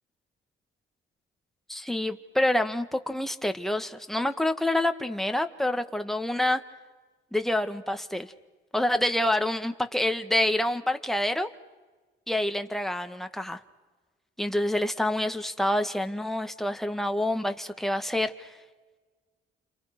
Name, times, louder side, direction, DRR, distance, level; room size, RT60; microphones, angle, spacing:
voice 1, 1.7-6.6 7.3-8.3 8.7-11.5 12.3-13.6 14.4-18.5, left 1 dB, ahead, 7 dB, 2.0 m, -27 dB
30.0 x 29.0 x 6.3 m, 1.3 s
cardioid pair, 90°, 20 cm